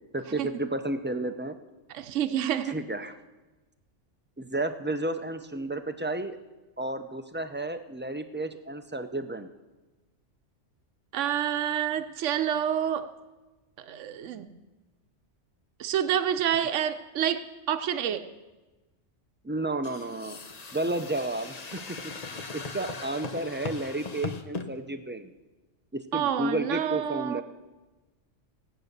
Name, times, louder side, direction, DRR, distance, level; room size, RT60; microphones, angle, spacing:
voice 1, 0.1-1.6 2.7-3.1 4.4-6.4 6.8-9.5 19.4-20.4 20.7-25.3 25.9-27.4, right 2 dB, 15° right, 8 dB, 0.3 m, -32 dB
voice 2, 1.9-2.8 11.1-13.1 13.8-14.6 15.8-18.3 26.1-27.4, right 9 dB, 80° right, 10 dB, 1.0 m, -28 dB
sound 1, 19.8-24.7, left 4 dB, 35° left, 0.9 m, -39 dB
16.5 x 8.9 x 6.6 m, 1.2 s
omnidirectional pair, 1.2 m